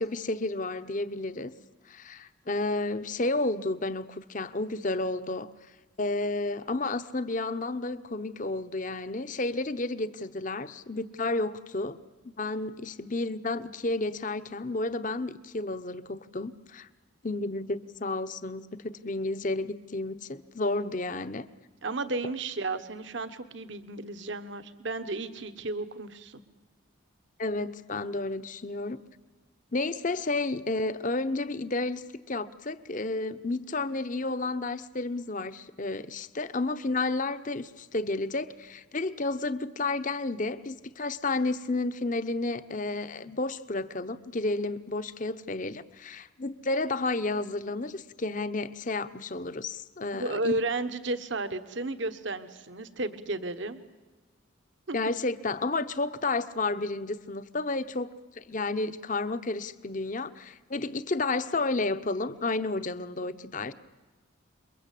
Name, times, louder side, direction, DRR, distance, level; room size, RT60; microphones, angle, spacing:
voice 1, 0.0-1.5 1.9-5.5 6.0-12.0 12.2-16.9 17.2-21.5 27.4-29.0 29.7-50.5 54.9-63.7, left 2 dB, 40° left, 12 dB, 0.9 m, -31 dB
voice 2, 21.8-26.4 50.2-53.8 54.9-55.0, right 2 dB, 60° right, 9 dB, 1.3 m, -33 dB
28.5 x 22.5 x 8.5 m, 1.3 s
head